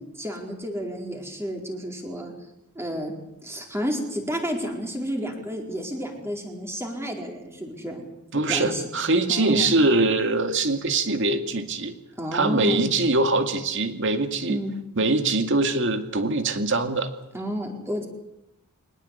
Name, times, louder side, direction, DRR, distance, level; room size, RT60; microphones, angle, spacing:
voice 1, 0.2-2.3 2.7-3.1 3.4-8.0 8.5-8.8 9.3-9.7 12.2-12.9 14.5-14.7 17.3-18.1, equal, 10° right, 1 dB, 4.3 m, -31 dB
voice 2, 8.3-11.9 12.3-14.6 15.0-17.1, right 2 dB, 60° right, 7 dB, 2.3 m, -23 dB
23.0 x 19.5 x 8.4 m, 0.87 s
head